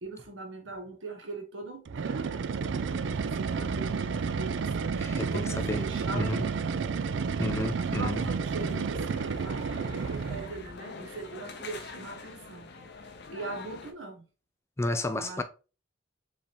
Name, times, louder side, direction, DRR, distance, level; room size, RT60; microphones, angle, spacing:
voice 1, 0.0-2.3 3.2-4.9 5.3-6.7 7.8-9.7 10.1-12.7 13.3-14.3 15.2-15.4, right 3 dB, 90° right, 1.2 m, -41 dB
sound 1, 1.9-10.6, right 5 dB, 70° right, 0.4 m, -31 dB
voice 2, 5.0-5.8 6.1-6.4 7.4-8.2 14.8-15.4, left 1 dB, 15° left, 0.4 m, -31 dB
sound 2, 7.4-13.9, left 3 dB, 60° left, 0.8 m, -45 dB
4.8 x 3.5 x 3.0 m
head